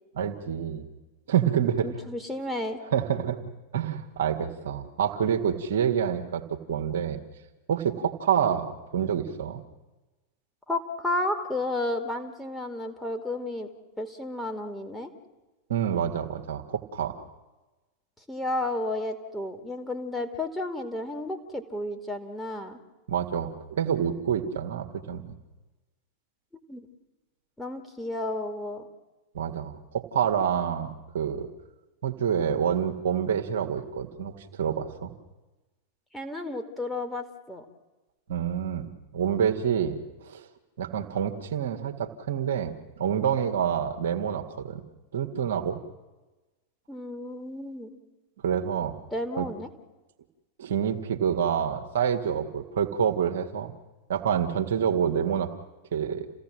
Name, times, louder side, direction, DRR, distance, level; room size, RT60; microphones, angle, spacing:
voice 1, 0.1-0.8 1.3-1.9 2.9-3.4 3.7-7.2 7.7-9.6 15.7-17.2 23.1-25.3 29.3-31.5 32.0-35.1 38.3-38.9 39.1-40.5 40.8-44.8 45.1-45.8 48.4-48.9 49.4-49.5 50.6-53.7 54.1-55.5 55.9-56.3, right 8 dB, 60° right, 4 dB, 2.0 m, -27 dB
voice 2, 1.8-2.8 10.7-13.7 14.0-15.1 18.3-22.8 26.7-26.9 27.6-28.9 36.1-37.6 46.9-48.0 49.1-49.7, left 2 dB, 5° left, 4 dB, 2.6 m, -32 dB
28.5 x 16.5 x 7.5 m, 1.1 s
figure-of-eight pair, 90°, 0 cm